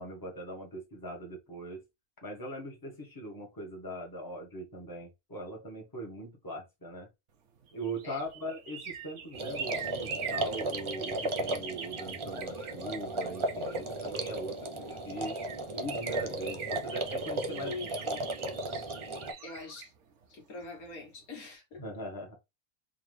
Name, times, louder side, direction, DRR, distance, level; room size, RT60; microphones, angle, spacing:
voice 1, 0.0-1.8 2.2-7.1 7.7-15.4 15.7-18.0 21.8-22.4, right 1 dB, 15° left, 1.5 m, -41 dB
sound 1, 7.6-14.4 14.9-15.0 15.2-21.0 21.4-21.5, right 7 dB, 60° right, 1.2 m, -42 dB
sound 2, 9.3-19.3, right 2 dB, 40° right, 0.4 m, -35 dB
voice 2, 15.7-16.2 17.5-18.2 19.4-19.9 20.3-21.8, left 3 dB, 90° left, 2.0 m, -43 dB
3.9 x 3.2 x 3.2 m
omnidirectional pair, 1.5 m